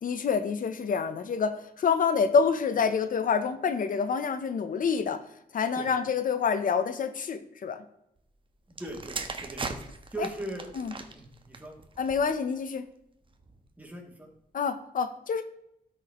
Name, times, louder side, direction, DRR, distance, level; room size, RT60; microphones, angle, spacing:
voice 1, 0.0-5.2 5.5-7.8 10.2-10.3 10.8-10.9 12.0-12.8 14.5-15.4, left 6 dB, 65° left, 10 dB, 0.7 m, -27 dB
voice 2, 8.7-9.7 10.1-10.6 11.1-11.8 13.8-14.3, right 2 dB, 10° right, 0 dB, 2.5 m, -39 dB
sound 1, 8.7-12.5 13.3-13.6, right 4 dB, 35° right, 1.1 m, -39 dB
13.0 x 6.5 x 3.0 m, 0.79 s
wide cardioid pair, 115°, 15 cm